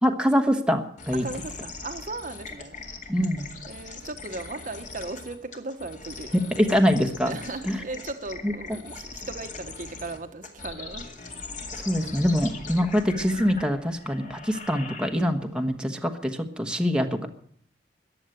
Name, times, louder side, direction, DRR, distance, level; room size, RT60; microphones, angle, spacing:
voice 1, 0.0-1.3 3.1-3.5 6.3-7.4 7.6-7.8 8.4-8.5 11.8-17.3, equal, 5° right, 4 dB, 1.3 m, -24 dB
sound 1, 1.0-15.5, left 3 dB, 45° left, 2.3 m, -41 dB
voice 2, 1.2-2.8 3.7-6.3 7.2-11.1, right 3 dB, 50° right, 8 dB, 1.1 m, -37 dB
14.5 x 9.9 x 9.1 m, 0.63 s
head